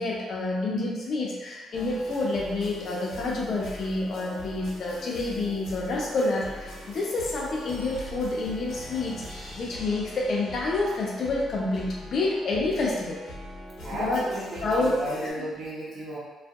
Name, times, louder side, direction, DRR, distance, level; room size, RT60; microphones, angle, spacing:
voice 1, 0.0-9.2 9.6-13.2 14.0-14.2 14.6-15.0 15.2-15.4, left 2 dB, 55° left, -3 dB, 0.6 m, -28 dB
sound 1, 1.7-15.3, equal, 80° left, 0.9 m, -42 dB
voice 2, 13.8-16.2, right 1 dB, 65° right, -6 dB, 0.9 m, -34 dB
2.6 x 2.4 x 2.4 m, 1.2 s
cardioid pair, 90°, 0 cm